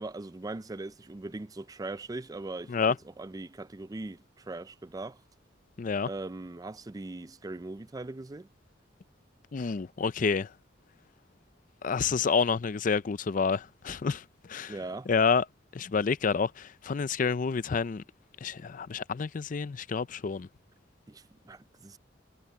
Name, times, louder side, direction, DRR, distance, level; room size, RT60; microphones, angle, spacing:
voice 1, 0.0-5.2 6.1-8.5 14.7-15.1 21.1-22.0, right 2 dB, 20° right, 0.4 m, -40 dB
voice 2, 5.8-6.1 9.5-10.5 11.8-14.7 15.1-15.4 15.7-18.0 18.4-20.5, left 5 dB, 45° left, 0.5 m, -28 dB
head